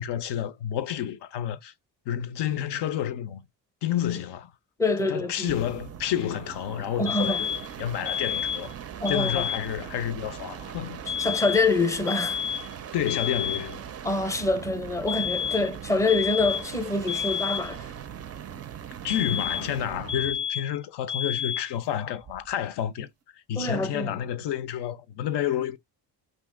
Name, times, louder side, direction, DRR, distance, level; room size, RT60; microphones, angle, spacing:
voice 1, 0.0-1.7 2.1-3.4 3.8-4.5 5.1-7.5 7.8-8.8 9.1-11.0 12.9-13.8 19.0-25.8, left 10 dB, 65° left, 0.6 m, -30 dB
voice 2, 4.8-5.5 7.0-7.5 9.0-9.4 11.2-12.4 14.0-17.9 23.5-24.1, left 3 dB, 5° left, 0.6 m, -26 dB
sound 1, 5.4-20.4 22.2-22.6, right 9 dB, 35° right, 0.4 m, -40 dB
sound 2, 7.1-7.7 8.1-8.7 9.1-9.7 11.1-11.7 12.1-12.7 13.1-13.7 15.1-15.7 16.1-16.7 17.1-17.7 19.1-19.8 20.1-20.8 21.1-21.8, left 8 dB, 85° left, 1.0 m, -30 dB
2.8 x 2.5 x 3.7 m
cardioid pair, 95°, 44 cm